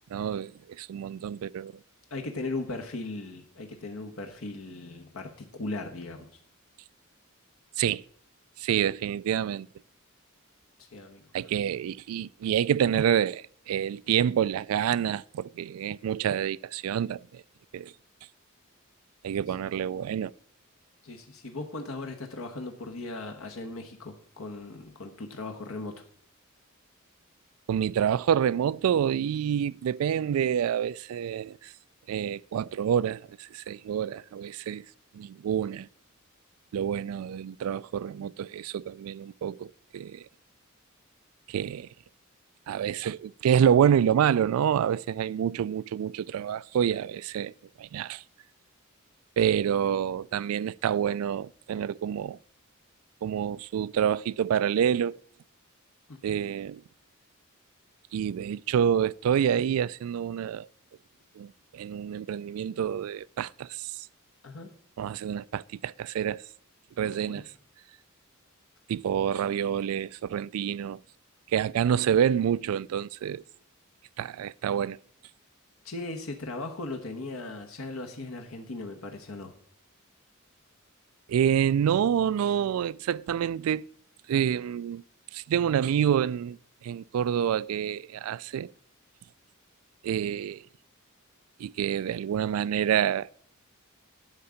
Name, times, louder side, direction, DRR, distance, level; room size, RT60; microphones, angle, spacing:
voice 1, 0.1-1.7 7.8-8.0 8.6-9.7 11.3-17.4 17.7-17.9 19.2-20.3 27.7-31.7 32.1-34.8 35.1-35.9 36.7-40.3 41.5-41.9 42.7-47.5 47.8-48.2 49.4-52.4 53.2-55.2 56.2-56.8 58.1-60.7 61.4-64.1 65.0-66.4 67.0-67.5 68.9-71.0 71.5-73.4 74.2-75.0 81.3-83.9 84.3-85.0 85.3-86.6 86.8-88.7 90.0-90.6 91.6-93.3, right 9 dB, 90° right, 0.3 m, -27 dB
voice 2, 2.1-6.3 10.8-11.2 21.0-26.1 56.1-56.4 64.4-64.7 67.2-67.5 75.8-79.5, left 2 dB, 80° left, 1.1 m, -38 dB
11.0 x 3.8 x 7.0 m
head